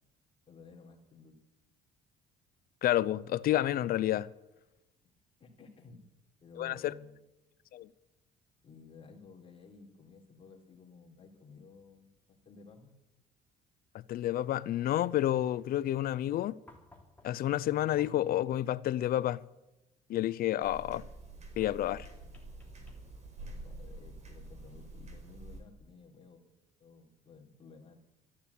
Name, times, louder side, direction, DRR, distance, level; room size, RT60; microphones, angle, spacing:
voice 1, 0.5-1.4 5.0-5.1 5.4-6.0 6.4-7.2 8.6-13.0 23.6-26.4 26.8-28.0, left 4 dB, 35° left, 3.6 m, -54 dB
voice 2, 2.8-4.3 6.6-6.9 7.7-7.9 14.1-16.6 17.2-19.4 20.1-21.1 21.6-22.1, left 13 dB, 60° left, 0.6 m, -30 dB
sound 1, 16.7-18.4 21.6-23.4 24.9-25.0, left 2 dB, 10° left, 3.3 m, -59 dB
sound 2, 20.6-25.6, right 2 dB, 45° right, 4.6 m, -47 dB
13.5 x 11.5 x 8.4 m
cardioid pair, 110°, 17 cm